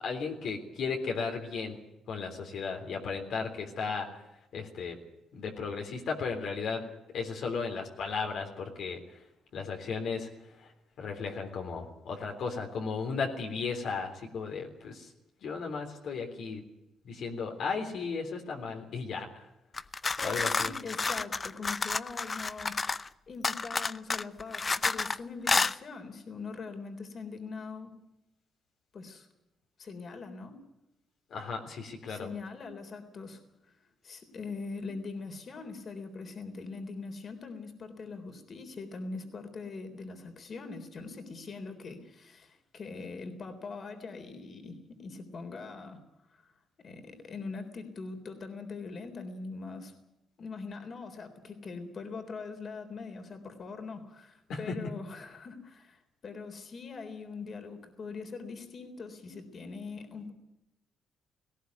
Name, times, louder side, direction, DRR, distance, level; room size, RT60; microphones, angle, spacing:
voice 1, 0.0-1.8 2.1-4.2 4.5-5.0 5.3-9.2 9.5-10.7 11.0-15.1 15.4-16.6 17.0-19.3 20.2-20.7 31.3-32.3 54.5-54.8, left 5 dB, 70° left, 2 dB, 3.5 m, -35 dB
sound 1, 19.7-23.1 23.4-25.2 25.5-25.7, left 4 dB, 30° left, 0.7 m, -30 dB
voice 2, 20.2-23.0 23.3-28.0 28.9-29.3 29.8-30.6 32.1-33.8 34.0-46.0 46.3-46.5 46.8-49.9 50.4-60.3, left 4 dB, 50° left, 6 dB, 3.7 m, -42 dB
19.0 x 17.5 x 9.5 m, 0.89 s
cardioid pair, 90°, 0 cm